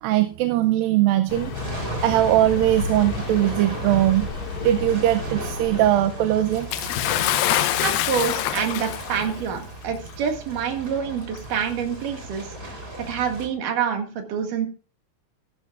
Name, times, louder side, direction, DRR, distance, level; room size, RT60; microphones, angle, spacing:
voice 1, 0.0-1.5 1.8-4.3 4.6-6.7, right 13 dB, 80° right, 10 dB, 2.4 m, -20 dB
Car passing by, 1.3-6.8, left 4 dB, 55° left, 3.0 m, -33 dB
sound 1, 1.5-13.5, right 1 dB, 25° right, 4.1 m, -36 dB
Bathtub (filling or washing) / Splash splatter, 6.7-9.3 10.2-10.3 11.3-11.4, left 12 dB, 80° left, 2.6 m, -24 dB
voice 2, 7.8-12.5 13.0-14.7, right 7 dB, 65° right, 4 dB, 3.4 m, -27 dB
16.5 x 13.0 x 2.5 m, 0.38 s
omnidirectional pair, 4.1 m